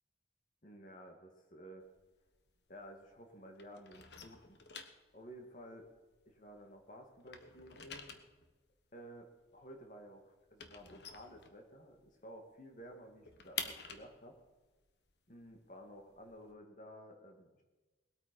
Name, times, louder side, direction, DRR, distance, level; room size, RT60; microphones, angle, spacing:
voice 1, 0.6-1.9 2.7-4.6 5.1-5.9 6.3-8.2 8.9-14.4 15.3-17.6, equal, 45° left, 3 dB, 2.1 m, -53 dB
sound 1, 1.8-3.3 3.5-6.8 7.1-12.1 12.4-12.5 12.8-16.5, left 6 dB, 65° left, 1.1 m, -49 dB
19.5 x 8.7 x 5.3 m, 1.2 s
head